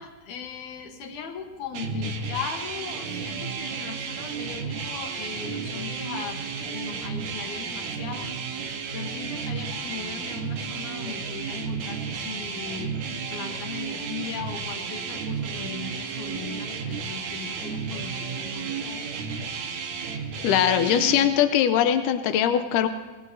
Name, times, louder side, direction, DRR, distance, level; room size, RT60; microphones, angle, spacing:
voice 1, 0.0-8.3 8.6-12.9 13.3-19.0, left 6 dB, 65° left, 4 dB, 2.4 m, -38 dB
sound 1, 1.7-21.3, right 5 dB, 65° right, 2.1 m, -32 dB
voice 2, 20.4-22.9, left 10 dB, 90° left, 9 dB, 1.9 m, -21 dB
24.0 x 19.5 x 2.7 m, 1.3 s
omnidirectional pair, 4.5 m